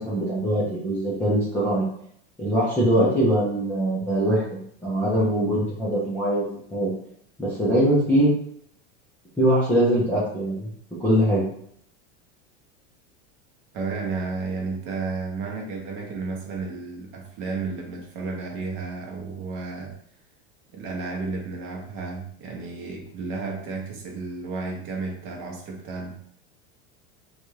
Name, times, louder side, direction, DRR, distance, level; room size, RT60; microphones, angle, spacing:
voice 1, 0.0-1.9 2.4-4.4 4.8-6.4 6.7-6.9 7.4-8.3 9.4-10.7 11.0-11.5, right 1 dB, 5° left, -9 dB, 0.4 m, -22 dB
voice 2, 13.7-19.9 20.7-26.2, right 4 dB, 40° right, 0 dB, 0.7 m, -32 dB
2.6 x 2.3 x 3.1 m, 0.68 s
supercardioid pair, 150°, 34 cm